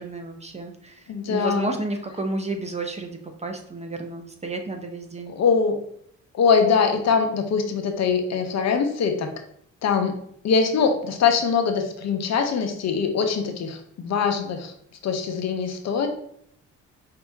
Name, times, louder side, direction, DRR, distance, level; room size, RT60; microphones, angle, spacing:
voice 1, 0.0-5.3, right 2 dB, 20° right, 4 dB, 0.7 m, -32 dB
voice 2, 1.1-1.7 5.3-5.8 6.3-9.3 9.8-10.2 10.4-14.7 15.0-16.1, left 5 dB, 60° left, 5 dB, 0.8 m, -22 dB
5.4 x 2.8 x 3.5 m, 0.68 s
cardioid pair, 90°, 30 cm